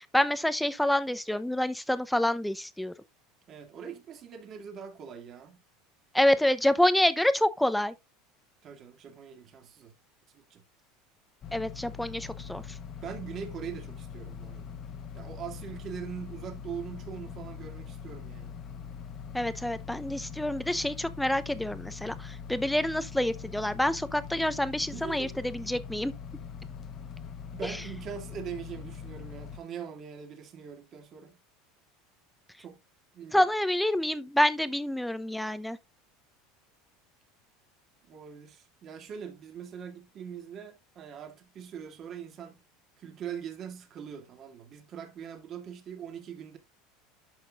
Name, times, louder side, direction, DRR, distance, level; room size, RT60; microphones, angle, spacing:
voice 1, 0.1-2.9 6.1-7.9 11.5-12.6 19.3-26.1 33.3-35.8, left 1 dB, 5° left, 0.7 m, -27 dB
voice 2, 3.5-5.6 8.6-9.9 10.3-10.6 13.0-14.8 15.1-18.5 24.9-25.4 27.5-31.4 32.6-32.8 33.1-33.5 38.1-42.6 43.0-46.6, right 7 dB, 40° right, 2.2 m, -42 dB
sound 1, 11.4-29.6, left 7 dB, 40° left, 1.0 m, -42 dB
11.5 x 5.8 x 2.4 m
supercardioid pair, 125°, 0 cm